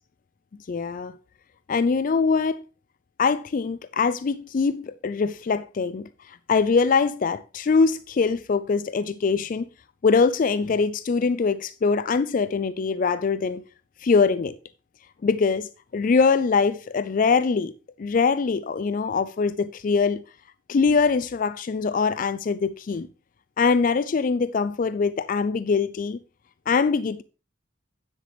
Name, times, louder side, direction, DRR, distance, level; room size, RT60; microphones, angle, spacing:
voice 1, 0.7-1.1 1.7-2.6 3.2-9.7 10.0-13.6 14.0-14.6 15.2-17.7 18.0-20.2 20.7-23.1 23.6-26.2 26.7-27.2, left 5 dB, 45° left, 0.4 m, -23 dB
9.5 x 7.9 x 3.2 m
head